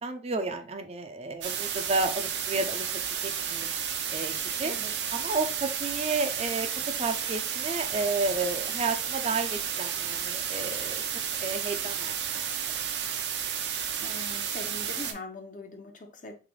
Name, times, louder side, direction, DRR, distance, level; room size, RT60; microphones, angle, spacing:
voice 1, 0.0-2.9 3.2-3.7 4.1-4.3 4.6-4.7 5.1-6.7 7.0-11.0 11.4-12.5, right 3 dB, 35° right, 0.4 m, -31 dB
sound 1, 1.4-15.1, right 8 dB, 80° right, 0.6 m, -32 dB
voice 2, 14.0-16.3, left 2 dB, 50° left, 0.8 m, -42 dB
3.5 x 3.3 x 3.7 m
head